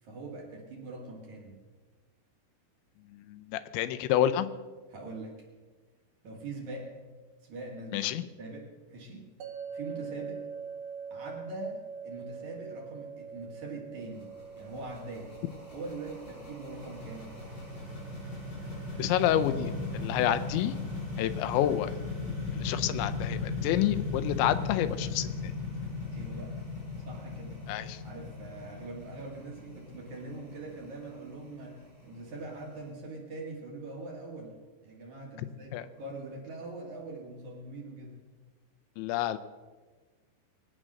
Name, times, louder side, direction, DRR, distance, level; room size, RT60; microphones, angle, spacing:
voice 1, 0.0-1.6 4.9-5.4 6.2-7.0 7.4-8.1 8.4-9.2 9.7-10.4 11.1-15.3 15.7-17.3 26.1-26.6 27.0-27.6 28.0-34.6 34.8-38.2, right 3 dB, 50° right, -1 dB, 2.9 m, -42 dB
voice 2, 3.1-4.5 7.9-8.3 19.0-20.7 21.2-21.9 22.5-25.5 27.7-28.0 35.7-35.9 39.0-39.4, left 12 dB, 85° left, 11 dB, 3.0 m, -29 dB
sound 1, 9.4-22.5, right 6 dB, 65° right, 2.8 m, -45 dB
sound 2, 14.0-32.8, left 3 dB, 45° left, 7.8 m, -37 dB
21.5 x 8.8 x 6.3 m, 1.4 s
omnidirectional pair, 5.2 m